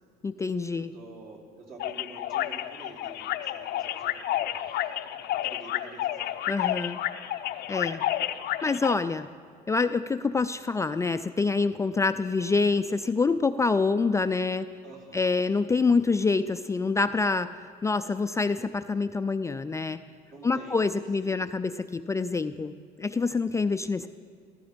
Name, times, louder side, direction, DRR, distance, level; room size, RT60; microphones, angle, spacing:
voice 1, 0.2-0.9 6.5-7.0 7.7-8.0 8.6-9.3 9.7-14.7 15.1-20.0 20.4-22.7 23.0-24.1, left 4 dB, 15° left, 10 dB, 0.4 m, -26 dB
voice 2, 0.8-5.0 5.3-6.3 14.8-15.3 20.3-20.9 21.2-21.6, right 2 dB, 55° right, -1 dB, 3.4 m, -48 dB
sound 1, 1.8-8.9, left 13 dB, 75° left, 0.6 m, -31 dB
15.5 x 15.0 x 5.2 m, 2.2 s
cardioid pair, 110°, 17 cm